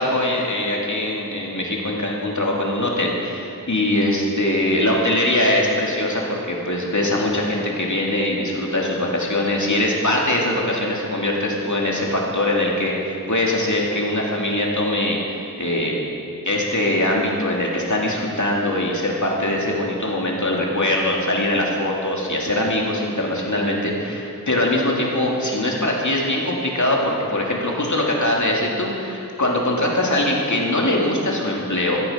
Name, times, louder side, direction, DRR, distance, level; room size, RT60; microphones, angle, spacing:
voice 1, 0.0-16.0 16.5-32.0, left 1 dB, 55° left, -2 dB, 2.6 m, -22 dB
15.0 x 14.0 x 5.2 m, 2.6 s
wide cardioid pair, 50°, 35 cm